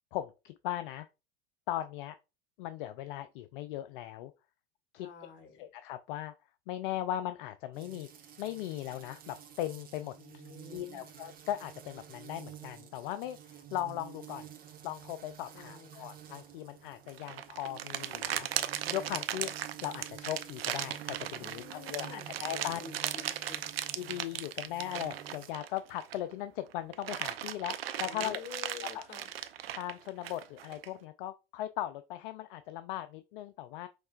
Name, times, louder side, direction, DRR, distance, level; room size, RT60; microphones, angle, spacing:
voice 1, 0.1-1.1 1.7-2.2 2.6-4.3 4.9-5.1 5.6-6.3 6.7-8.1 8.4-10.1 10.7-14.5 14.8-18.5 18.9-22.8 24.0-28.4 28.8-29.0 29.8-33.9, left 13 dB, 65° left, 0.4 m, -38 dB
voice 2, 5.0-5.7 10.2-11.1 15.5-16.1 21.4-24.0 28.0-29.3, left 6 dB, 40° left, 1.5 m, -49 dB
sound 1, 7.7-25.5, right 10 dB, 30° right, 1.1 m, -51 dB
sound 2, 17.1-26.3 26.7-30.9, right 11 dB, 85° right, 0.5 m, -37 dB
5.3 x 3.2 x 2.4 m
hypercardioid pair, 90°, 29 cm